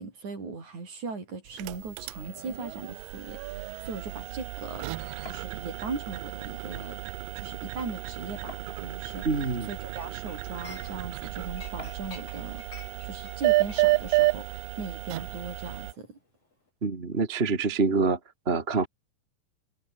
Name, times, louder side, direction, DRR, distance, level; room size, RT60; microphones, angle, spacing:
voice 1, 0.0-7.0 7.4-9.3 9.6-12.6 13.0-16.2, right 4 dB, 55° right, 7.0 m, -39 dB
sound 1, 1.5-15.9, right 20 dB, 85° right, 2.3 m, -32 dB
sound 2, 5.3-5.5 6.7-6.8 7.2-7.3 8.5-9.1 10.0-10.1 11.8-12.2, left 2 dB, 15° left, 4.3 m, -46 dB
voice 2, 9.2-9.7 16.8-18.2 18.5-18.9, right 4 dB, 20° right, 1.8 m, -26 dB
Chink clink, 9.9-11.2 11.6-16.2 16.4-16.7, left 4 dB, 45° left, 6.0 m, -50 dB
omnidirectional pair, 4.0 m